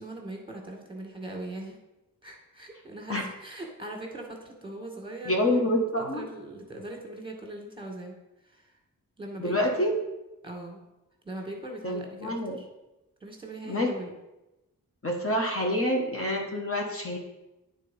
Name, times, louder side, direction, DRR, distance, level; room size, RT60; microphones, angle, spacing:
voice 1, 0.0-1.8 2.2-5.6 6.0-8.1 8.4-8.7 9.2-9.8 10.4-10.8 11.2-12.7 13.2-14.1, right 1 dB, 15° right, 1 dB, 2.1 m, -40 dB
voice 2, 5.2-6.2 9.4-9.9 11.8-12.6 13.6-13.9 15.0-17.2, left 1 dB, 40° left, 0 dB, 1.4 m, -27 dB
9.0 x 4.1 x 5.5 m, 0.98 s
cardioid pair, 70°, 35 cm